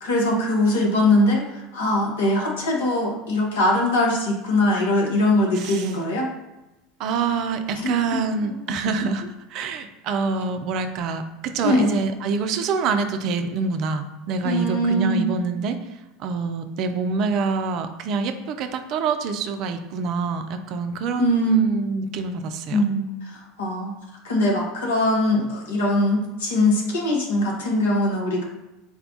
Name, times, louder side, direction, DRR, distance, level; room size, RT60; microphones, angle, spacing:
voice 1, 0.0-6.3 7.8-8.6 11.6-11.9 14.4-15.3 21.2-21.6 22.7-23.9 24.2-28.4, left 1 dB, 70° left, -1 dB, 1.0 m, -22 dB
voice 2, 5.6-5.9 7.0-9.2 9.5-15.8 16.2-22.8, right 4 dB, 50° right, 7 dB, 0.4 m, -26 dB
4.2 x 2.3 x 3.7 m, 1.0 s
figure-of-eight pair, 75°, 0 cm